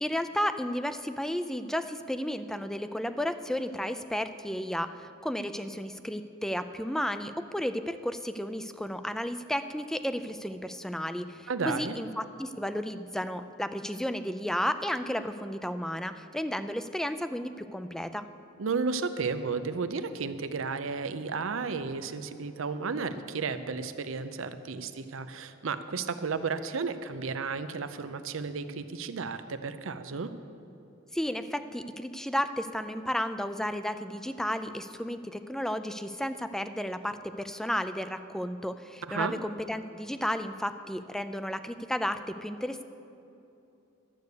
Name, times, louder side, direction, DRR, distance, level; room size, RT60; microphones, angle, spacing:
voice 1, 0.0-18.3 31.1-42.8, equal, ahead, 10 dB, 0.4 m, -33 dB
voice 2, 11.5-11.9 18.6-30.3 39.1-39.4, right 4 dB, 75° right, 11 dB, 0.6 m, -33 dB
11.5 x 8.1 x 6.7 m, 2.8 s
head